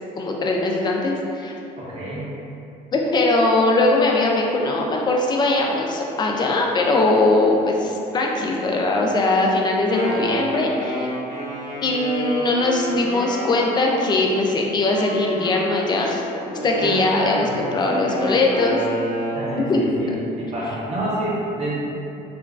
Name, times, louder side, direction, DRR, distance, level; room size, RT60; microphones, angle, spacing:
voice 1, 0.2-1.5 2.9-11.1 11.8-16.2 16.6-18.8 19.7-19.8 20.1-20.2, left 2 dB, 25° left, 0 dB, 0.3 m, -20 dB
voice 2, 1.8-2.3 16.8-17.5 19.3-20.1 20.4-21.8, right 1 dB, 35° right, -7 dB, 0.7 m, -28 dB
Wind instrument woodwind instrument, 9.7-14.4 14.9-19.6, equal, 75° left, 0.8 m, -29 dB
2.9 x 2.3 x 2.4 m, 2.8 s
cardioid pair, 110°, 17 cm